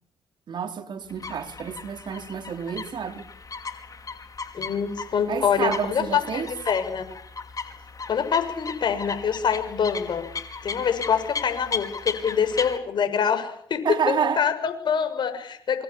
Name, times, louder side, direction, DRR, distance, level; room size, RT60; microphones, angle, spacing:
voice 1, 0.5-3.3 5.3-6.5 13.8-14.4, right 7 dB, 60° right, 4.0 m, -29 dB
sound 1, 1.1-12.8, left 4 dB, 40° left, 5.2 m, -36 dB
voice 2, 4.5-7.1 8.1-10.2 10.6-15.8, left 7 dB, 60° left, 6.9 m, -25 dB
27.0 x 25.0 x 7.4 m
supercardioid pair, 50°, 9 cm